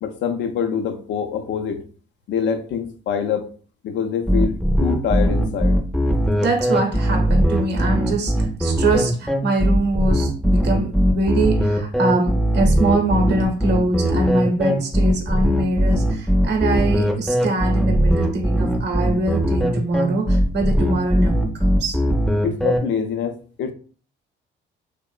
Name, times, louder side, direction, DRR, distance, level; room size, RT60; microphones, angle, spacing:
voice 1, 0.0-1.8 2.3-3.5 3.8-5.8 22.4-23.7, left 7 dB, 65° left, 0.4 m, -25 dB
sound 1, 4.3-22.8, equal, ahead, 0.5 m, -19 dB
voice 2, 6.4-22.0, right 2 dB, 60° right, 0.7 m, -23 dB
2.9 x 2.0 x 2.3 m
cardioid pair, 90°, 20 cm